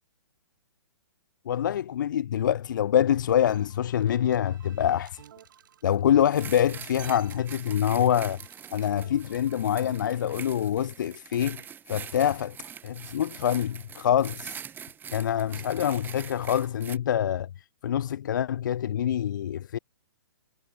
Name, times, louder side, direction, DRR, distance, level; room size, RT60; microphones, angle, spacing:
voice 1, 1.5-5.2 5.8-8.4 8.7-12.6 12.8-14.6 15.1-17.5 17.8-19.8, left 10 dB, 50° left, 0.7 m, -25 dB
sound 1, 3.5-9.6, right 9 dB, 50° right, 5.9 m, -54 dB
sound 2, 6.3-17.0, right 8 dB, 15° right, 4.8 m, -44 dB
figure-of-eight pair, 120°, 13 cm